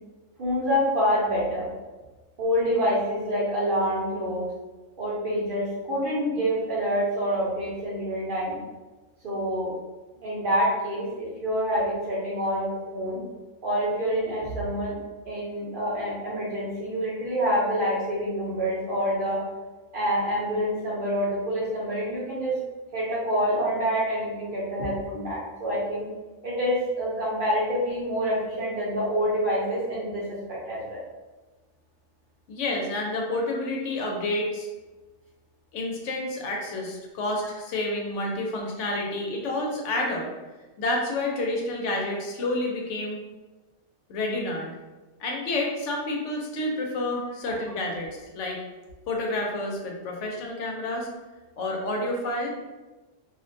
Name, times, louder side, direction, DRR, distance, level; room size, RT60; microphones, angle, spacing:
voice 1, 0.4-1.7 2.4-4.5 5.0-8.6 9.2-9.7 10.2-13.2 13.6-14.9 15.3-19.4 19.9-22.5 22.9-26.1 26.4-31.0, equal, 50° right, -6 dB, 0.8 m, -27 dB
voice 2, 32.5-34.7 35.7-40.3 40.8-43.2 44.1-44.7 45.2-48.1 48.3-48.6 49.1-51.1 51.6-52.5, left 2 dB, 70° left, 0 dB, 0.9 m, -29 dB
2.5 x 2.1 x 2.5 m, 1.2 s
omnidirectional pair, 1.3 m